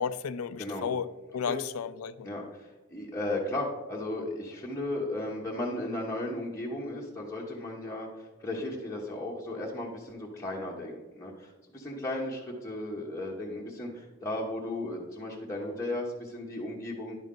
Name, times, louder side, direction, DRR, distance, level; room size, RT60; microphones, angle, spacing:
voice 1, 0.0-2.3, left 6 dB, 85° left, 15 dB, 0.4 m, -33 dB
voice 2, 2.2-8.1 8.4-17.2, left 1 dB, 15° left, -4 dB, 1.0 m, -35 dB
10.5 x 5.3 x 3.7 m, 1.2 s
head